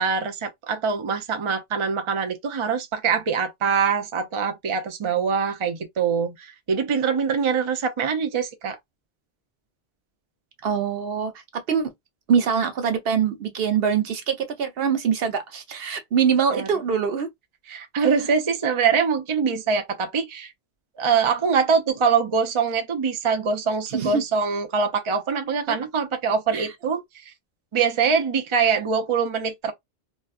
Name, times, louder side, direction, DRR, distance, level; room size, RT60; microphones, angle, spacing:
voice 1, 0.0-8.8 16.5-16.7 17.7-20.5 21.0-27.0 27.7-29.7, right 6 dB, 35° right, 0.6 m, -23 dB
voice 2, 10.6-11.9 12.3-17.3 23.9-24.2 25.7-25.8 26.5-26.7, right 7 dB, 70° right, 0.8 m, -24 dB
4.1 x 2.2 x 2.4 m
omnidirectional pair, 1.1 m